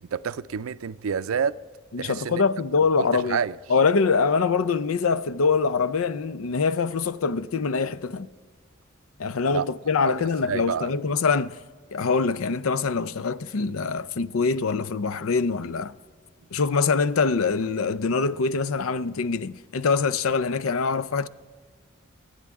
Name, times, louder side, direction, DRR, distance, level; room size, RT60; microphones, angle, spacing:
voice 1, 0.0-1.6 2.0-2.4 3.0-3.6 9.5-9.7 10.0-10.9, right 6 dB, 90° right, 0.5 m, -29 dB
voice 2, 1.9-3.4 3.7-8.3 9.2-11.6 11.9-15.9 16.5-21.3, left 4 dB, 90° left, 0.5 m, -24 dB
24.0 x 9.8 x 3.6 m
head